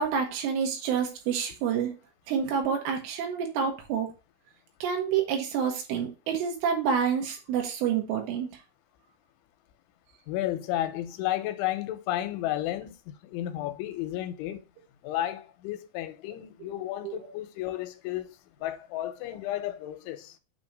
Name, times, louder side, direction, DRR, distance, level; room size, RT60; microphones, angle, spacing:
voice 1, 0.0-2.0 2.3-4.1 4.8-8.6 17.0-17.3, right 7 dB, 85° right, 4.2 m, -28 dB
voice 2, 10.3-14.6 15.0-18.3 18.6-20.3, left 13 dB, 80° left, 3.1 m, -32 dB
8.8 x 3.0 x 5.2 m
omnidirectional pair, 5.5 m